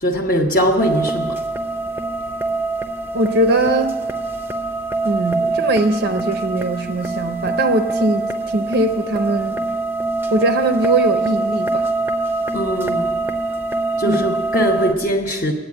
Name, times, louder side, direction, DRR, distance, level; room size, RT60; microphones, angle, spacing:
voice 1, 0.0-1.4 12.5-13.3 14.0-15.5, equal, 40° left, -1 dB, 0.9 m, -20 dB
sound 1, 0.8-14.9, right 3 dB, 10° right, 0.6 m, -24 dB
voice 2, 3.1-4.0 5.0-9.7 10.3-11.9 14.0-14.4, right 2 dB, 50° right, 7 dB, 0.6 m, -20 dB
10.0 x 8.3 x 9.5 m, 1.3 s
head